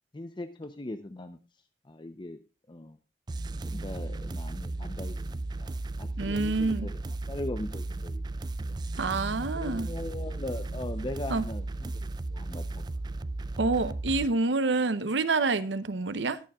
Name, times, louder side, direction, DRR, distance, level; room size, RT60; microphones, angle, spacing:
voice 1, 0.1-1.4 1.9-2.4 2.7-3.0 3.6-7.0 7.3-8.2 9.5-12.8, left 1 dB, 25° left, 0.6 m, -40 dB
sound 1, 3.3-14.3, right 2 dB, 25° right, 0.4 m, -35 dB
voice 2, 6.2-6.9 9.0-9.9 11.3-11.4 13.6-16.4, right 3 dB, 90° right, 0.8 m, -27 dB
21.0 x 7.2 x 2.3 m
head